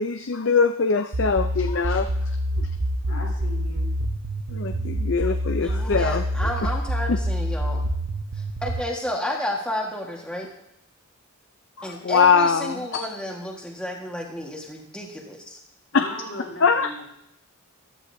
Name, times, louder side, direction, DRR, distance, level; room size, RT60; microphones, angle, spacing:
voice 1, 0.0-2.7 3.1-3.2 4.5-6.8 7.1-7.2 11.8-13.1 15.9-16.1 16.6-16.9, left 5 dB, 60° left, 7 dB, 0.5 m, -23 dB
sound 1, 1.1-8.8, equal, 90° right, 0.7 m, -26 dB
voice 2, 3.1-3.9 15.9-17.0, left 1 dB, 85° left, -3 dB, 4.6 m, -37 dB
voice 3, 5.6-7.8 8.4-10.5 11.8-15.6, left 1 dB, 5° left, -2 dB, 1.5 m, -31 dB
14.0 x 11.5 x 2.7 m, 0.80 s
head